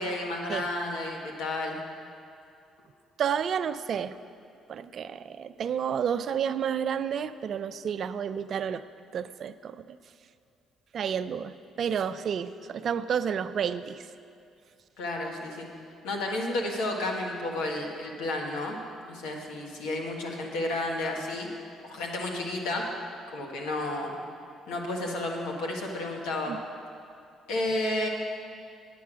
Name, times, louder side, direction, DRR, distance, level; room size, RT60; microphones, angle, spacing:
voice 1, 0.0-1.8 15.0-15.7 16.0-18.8 19.1-21.5 21.8-22.9 23.3-24.1 24.7-26.5 27.5-28.1, left 2 dB, 90° left, 0 dB, 1.4 m, -31 dB
voice 2, 3.2-4.2 4.7-8.8 9.1-10.0 10.9-14.0 26.5-26.6, right 8 dB, 55° right, 11 dB, 0.4 m, -30 dB
9.2 x 8.4 x 6.1 m, 2.5 s
cardioid pair, 80°, 0 cm